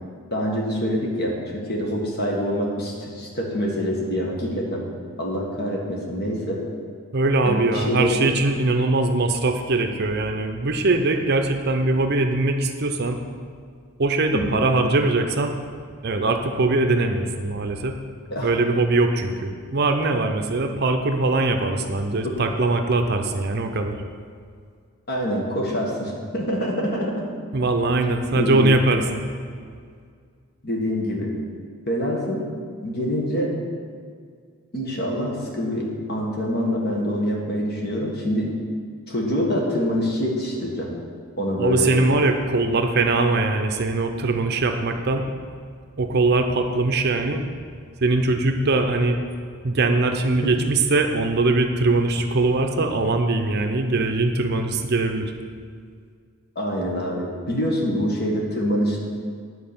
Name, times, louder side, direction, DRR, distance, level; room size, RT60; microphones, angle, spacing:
voice 1, 0.3-4.8 5.2-6.6 7.5-8.2 14.3-14.6 18.3-18.5 22.2-22.3 25.1-27.2 28.3-28.7 30.6-31.3 31.9-32.4 32.8-33.5 34.7-38.5 39.1-40.9 41.4-41.9 50.4-50.5 56.6-59.0, equal, 45° left, -1 dB, 1.7 m, -25 dB
voice 2, 7.1-13.2 14.0-15.6 16.0-18.0 18.4-24.0 27.5-29.2 41.6-45.3 46.0-47.4 48.0-49.2 49.6-55.3, right 2 dB, 45° right, 6 dB, 0.6 m, -21 dB
9.7 x 4.7 x 7.0 m, 2.1 s
head